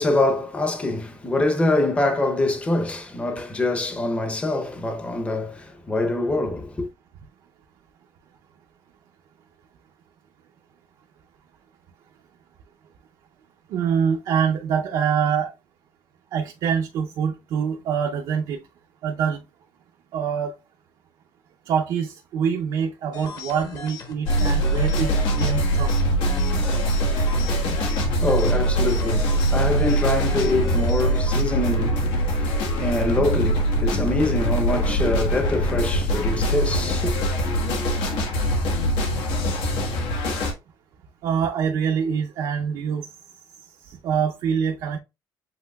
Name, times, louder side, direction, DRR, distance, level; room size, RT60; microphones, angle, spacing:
voice 1, 0.0-6.9 27.6-37.1, left 2 dB, 15° left, 0.7 m, -25 dB
voice 2, 13.7-15.5 16.3-18.6 19.0-19.4 20.1-20.5 21.7-25.1 25.4-25.9 41.2-43.0 43.9-45.0, right 7 dB, 65° right, 0.6 m, -25 dB
sound 1, 23.1-31.5, left 4 dB, 50° left, 1.2 m, -37 dB
sound 2, 24.3-40.5, right 1 dB, 85° left, 1.4 m, -23 dB
7.7 x 3.0 x 2.3 m
cardioid pair, 175°, 9 cm